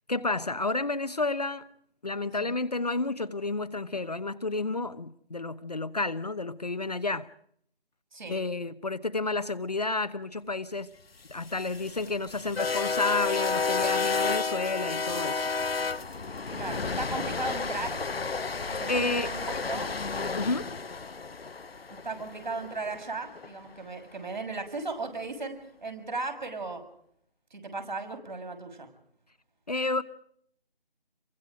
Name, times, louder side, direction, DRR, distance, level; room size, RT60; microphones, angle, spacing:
voice 1, 0.1-1.7 2.0-7.3 8.3-10.9 11.3-15.5 18.9-19.3 20.3-20.7 29.7-30.0, left 3 dB, 40° left, 1.0 m, -31 dB
sound 1, 11.3-23.5, left 4 dB, 70° left, 1.0 m, -31 dB
voice 2, 16.5-18.0 18.7-19.9 22.0-26.8 27.5-28.9, right 3 dB, 50° right, 6.7 m, -36 dB
29.0 x 24.0 x 5.0 m
figure-of-eight pair, 170°, 30 cm